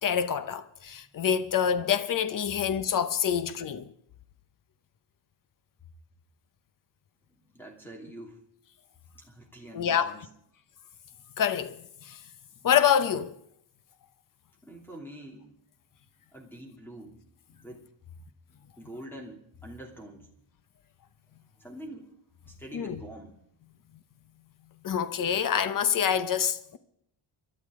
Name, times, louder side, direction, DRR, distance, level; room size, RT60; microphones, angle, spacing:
voice 1, 0.0-3.9 9.7-10.1 11.4-12.2 12.6-13.4 22.7-23.0 24.8-26.8, left 8 dB, 40° left, 0.8 m, -26 dB
voice 2, 7.4-8.4 9.1-10.2 14.6-15.5 16.3-17.2 17.5-18.1 18.8-20.3 21.6-22.1 22.4-23.4, right 1 dB, 5° left, 2.8 m, -45 dB
27.5 x 12.0 x 3.7 m
wide cardioid pair, 165°, 48 cm